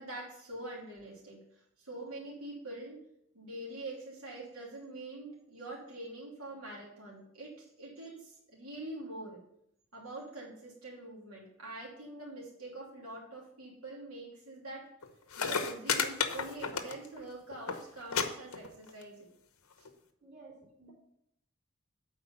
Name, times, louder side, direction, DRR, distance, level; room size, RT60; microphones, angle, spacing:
voice 1, 0.0-3.0 3.3-9.4 9.9-14.9 15.4-19.3 19.8-19.9, right 2 dB, 85° right, -4 dB, 3.0 m, -45 dB
sound 1, 15.0-15.1 15.3-17.2 17.5-17.8 18.1-18.2 18.5-19.0 19.9-20.0, left 6 dB, 90° left, 0.9 m, -32 dB
voice 2, 20.2-20.9, right 3 dB, 50° right, -4 dB, 3.2 m, -54 dB
8.1 x 4.9 x 7.0 m, 0.75 s
head